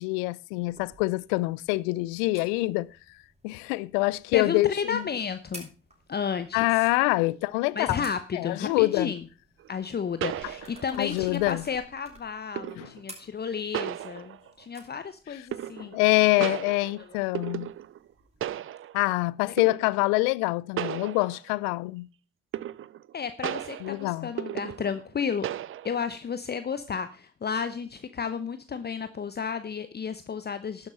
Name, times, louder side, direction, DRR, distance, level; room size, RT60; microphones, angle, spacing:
voice 1, 0.0-2.9 3.4-5.0 6.5-8.1 8.3-9.1 11.0-11.6 12.8-12.9 15.8-17.7 18.9-22.1 23.8-24.3, left 22 dB, 75° left, 0.5 m, -25 dB
sound 1, 0.6-18.5, right 1 dB, 20° right, 6.1 m, -54 dB
voice 2, 4.3-5.7 6.1-6.9 7.7-9.2 9.7-15.9 16.4-16.5 17.0-17.1 19.5-19.6 23.1-25.5 25.8-30.9, left 6 dB, 35° left, 0.9 m, -32 dB
sound 2, 9.6-9.7 10.2-11.1 12.6-13.0 13.7-14.6 15.5-16.1 16.4-18.1 18.4-19.1 19.6-20.0 20.8-21.7 22.5-23.1 23.4-25.1 25.4-26.1, right 12 dB, 45° right, 0.5 m, -35 dB
11.5 x 7.2 x 5.5 m
hypercardioid pair, 45°, 30 cm